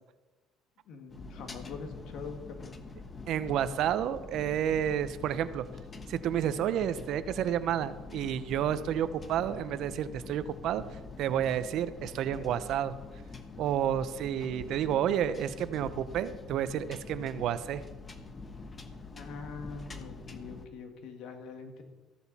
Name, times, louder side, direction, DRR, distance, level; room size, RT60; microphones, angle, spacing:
voice 1, 0.9-2.8 19.1-21.8, left 4 dB, 70° left, 4 dB, 2.2 m, -43 dB
sound 1, 1.1-20.7, left 3 dB, 25° left, 1.2 m, -45 dB
voice 2, 3.3-5.6 6.1-10.8 11.2-12.9 13.6-17.8, right 10 dB, 65° right, 13 dB, 0.7 m, -30 dB
14.5 x 11.5 x 4.2 m, 1.2 s
cardioid pair, 120°, 0 cm